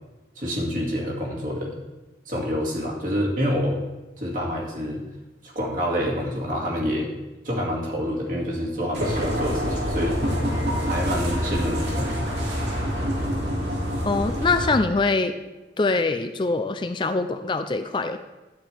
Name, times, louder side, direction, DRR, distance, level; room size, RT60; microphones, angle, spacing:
voice 1, 0.4-1.8 2.3-3.8 4.2-5.0 5.4-7.1 7.4-10.2 10.8-12.2, equal, 45° right, -2 dB, 2.2 m, -27 dB
sound 1, 8.9-14.7, equal, 80° right, 2.2 m, -26 dB
voice 2, 14.0-15.3 15.8-18.2, left 3 dB, 25° left, 8 dB, 0.4 m, -23 dB
11.0 x 9.2 x 3.4 m, 1.1 s
head